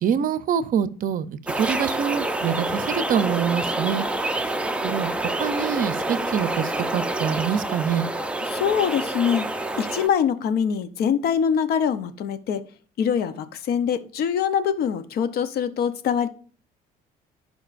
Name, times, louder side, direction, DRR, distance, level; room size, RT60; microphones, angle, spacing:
voice 1, 0.0-4.0 4.8-5.1 5.4-8.1, right 8 dB, 55° right, 14 dB, 0.6 m, -25 dB
sound 1, 1.5-10.1, right 2 dB, 5° right, 0.6 m, -27 dB
voice 2, 8.5-9.5 9.8-12.6 13.0-16.3, left 7 dB, 65° left, 12 dB, 0.8 m, -23 dB
15.5 x 5.2 x 2.5 m, 0.42 s
cardioid pair, 110°, 17 cm